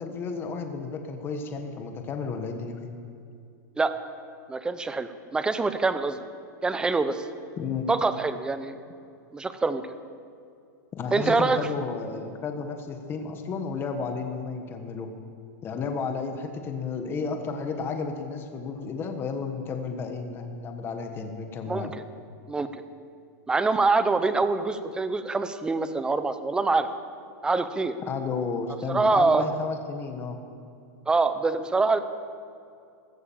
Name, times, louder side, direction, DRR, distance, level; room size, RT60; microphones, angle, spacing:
voice 1, 0.0-2.9 7.6-7.9 11.0-15.1 15.6-21.9 28.1-30.4, left 5 dB, 20° left, 5 dB, 1.4 m, -32 dB
voice 2, 4.5-6.2 6.6-7.2 7.9-8.8 9.3-9.8 11.1-11.7 21.7-22.0 22.5-22.7 23.5-26.9 27.4-27.9 28.9-29.4 31.1-32.0, right 3 dB, 10° right, 11 dB, 0.7 m, -25 dB
15.0 x 13.5 x 7.1 m, 2.4 s
supercardioid pair, 150°, 10 cm